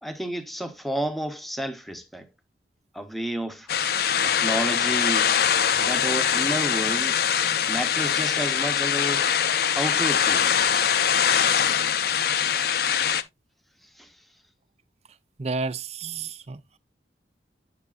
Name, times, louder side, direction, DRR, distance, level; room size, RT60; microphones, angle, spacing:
voice 1, 0.0-2.3 2.9-3.7 4.2-5.4 5.8-7.2 7.7-9.3 9.7-10.9 14.0-14.1, right 1 dB, ahead, 0.9 m, -31 dB
sound 1, 3.7-13.2, left 8 dB, 60° left, 0.6 m, -23 dB
voice 2, 15.4-16.8, right 4 dB, 35° right, 0.6 m, -31 dB
8.5 x 6.7 x 2.4 m
head